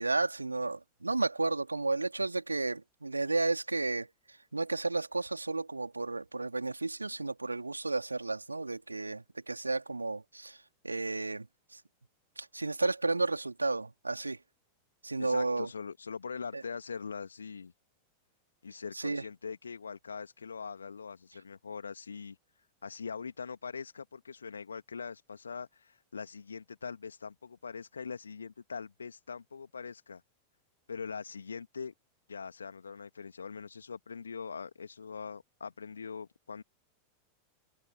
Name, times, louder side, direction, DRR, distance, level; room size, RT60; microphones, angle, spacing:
voice 1, 0.0-4.1 4.5-10.6 10.8-11.5 11.7-11.8 12.4-14.4 15.0-15.7 16.5-16.6 18.9-19.2, right 3 dB, 80° right, 3.1 m, -32 dB
voice 2, 15.2-17.7 18.6-22.4 22.8-30.2 30.9-31.9 32.3-36.6, left 5 dB, 75° left, 2.0 m, -42 dB
figure-of-eight pair, 90°, 0 cm